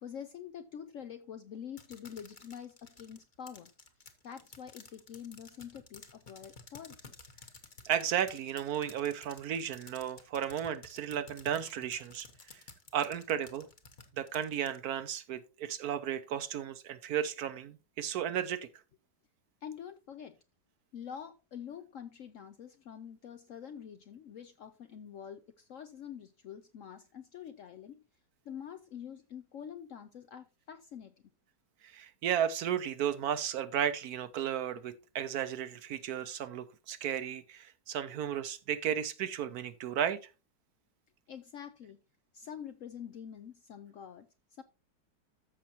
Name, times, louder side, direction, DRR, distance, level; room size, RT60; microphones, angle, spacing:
voice 1, 0.0-3.7 4.2-7.1 19.6-20.4 20.9-28.0 28.4-31.1 41.3-42.0 42.3-44.6, left 8 dB, 65° left, 0.8 m, -46 dB
sound 1, 1.8-14.8, left 4 dB, 30° left, 1.1 m, -53 dB
voice 2, 7.8-12.6 12.9-13.7 14.2-18.7 31.8-40.2, right 9 dB, 70° right, 1.0 m, -34 dB
14.0 x 5.9 x 2.8 m
omnidirectional pair, 1.9 m